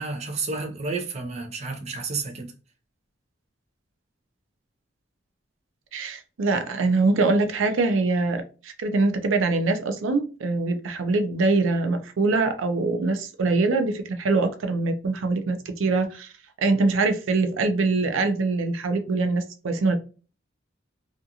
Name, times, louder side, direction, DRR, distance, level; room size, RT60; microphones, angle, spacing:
voice 1, 0.0-2.5, right 4 dB, 35° right, 0.5 m, -31 dB
voice 2, 5.9-16.3 16.6-20.0, right 3 dB, 90° right, 0.5 m, -23 dB
2.5 x 2.3 x 2.7 m
head